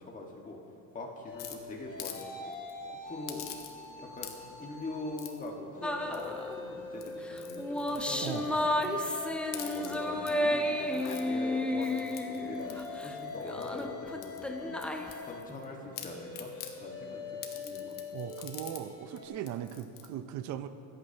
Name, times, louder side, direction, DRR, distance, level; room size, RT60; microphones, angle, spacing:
voice 1, 0.1-0.6 0.9-2.5 3.1-3.4 3.9-12.7 13.0-14.8 15.3-16.5 16.8-18.0, left 2 dB, 25° left, -1 dB, 1.6 m, -43 dB
sound 1, 1.2-5.3 5.7-19.3, left 4 dB, 40° left, 1.6 m, -43 dB
sound 2, 1.4-2.2 2.5-2.7 3.3-3.9 4.2-4.6 5.2-5.5 6.1-6.5 6.9-9.1 9.4-10.3 10.8-11.2 11.8-13.8 14.2-15.6 15.9-16.7 17.4-18.8 19.2-19.3 19.4-20.1, left 9 dB, 65° left, 1.2 m, -46 dB
sound 3, 5.8-6.6 7.3-13.1 13.4-15.3, left 1 dB, 5° left, 0.4 m, -32 dB
voice 2, 8.2-8.6 18.1-20.7, right 10 dB, 55° right, 10 dB, 0.6 m, -38 dB
24.5 x 8.6 x 2.9 m, 2.9 s
cardioid pair, 140°, 34 cm